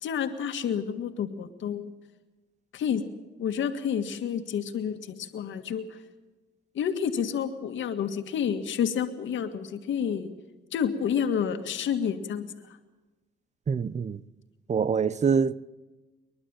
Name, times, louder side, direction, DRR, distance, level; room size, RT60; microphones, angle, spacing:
voice 1, 0.0-1.9 2.7-3.0 3.4-5.8 6.7-10.3 10.7-12.5, left 8 dB, 70° left, 1.9 m, -29 dB
voice 2, 13.7-14.2 14.7-15.6, right 6 dB, 35° right, 0.8 m, -25 dB
26.0 x 11.5 x 9.0 m
cardioid pair, 90°, 20 cm